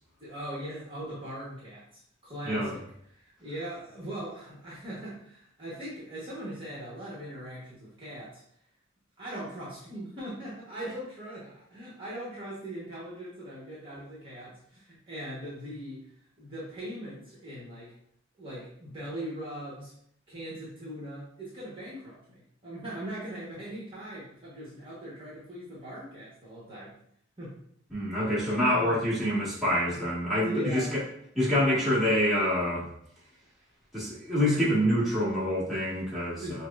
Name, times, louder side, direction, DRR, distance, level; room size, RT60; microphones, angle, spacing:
voice 1, 0.2-2.8 3.1-8.4 9.2-16.1 16.4-17.9 18.4-19.9 20.3-26.9 27.4-27.6 28.7-29.0 29.8-30.2 30.4-30.9 36.4-36.7, right 1 dB, 25° right, -8 dB, 1.0 m, -40 dB
voice 2, 27.9-31.0 31.3-32.9 33.9-36.7, equal, ahead, -10 dB, 1.4 m, -26 dB
5.8 x 2.1 x 2.3 m, 0.69 s
head